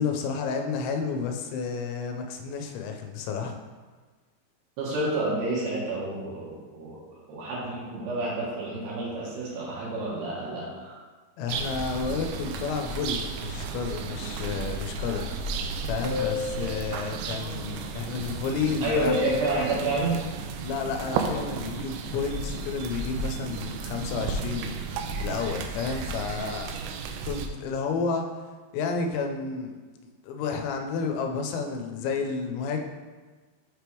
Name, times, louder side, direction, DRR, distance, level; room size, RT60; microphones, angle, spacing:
voice 1, 0.0-3.5 11.4-15.3 15.5-19.2 20.6-24.7 25.2-26.7 27.2-28.3 28.7-29.7 30.2-32.8, left 5 dB, 90° left, 4 dB, 2.9 m, -31 dB
voice 2, 4.8-7.0 7.3-10.9 18.8-20.2, right 2 dB, 65° right, -6 dB, 2.8 m, -29 dB
sound 1, 11.5-27.5, right 4 dB, 85° right, 2.8 m, -33 dB
sound 2, 16.0-17.1 18.9-19.7, left 5 dB, 45° right, 1.4 m, -31 dB
7.2 x 3.4 x 4.5 m, 1.4 s
omnidirectional pair, 5.1 m